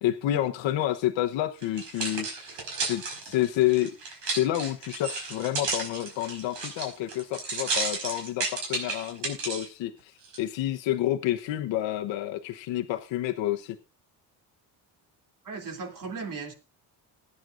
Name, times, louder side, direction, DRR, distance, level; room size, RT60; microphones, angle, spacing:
voice 1, 0.0-2.5 2.9-3.9 4.3-13.8, left 13 dB, 85° left, 1.0 m, -29 dB
sound 1, 1.6-9.7 10.2-10.4, right 4 dB, 80° right, 5.2 m, -33 dB
voice 2, 15.4-16.5, right 4 dB, 45° right, 3.0 m, -36 dB
20.5 x 9.9 x 2.5 m
cardioid pair, 130°, 44 cm